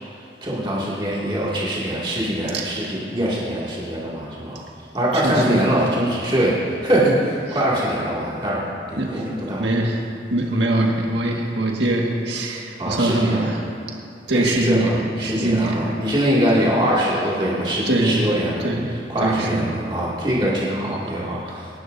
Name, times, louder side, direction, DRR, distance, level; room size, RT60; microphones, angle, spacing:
voice 1, 0.4-4.6 4.9-9.7 12.8-13.4 14.4-18.7 19.1-21.7, right 1 dB, 25° right, -7 dB, 2.3 m, -23 dB
voice 2, 2.5-3.0 5.1-5.6 9.0-9.2 9.6-10.0 10.3-13.6 14.3-16.0 16.5-16.7 17.9-18.3 18.6-18.9 19.2-19.7, right 1 dB, 90° right, -1 dB, 1.8 m, -22 dB
25.5 x 11.5 x 2.7 m, 2.5 s
head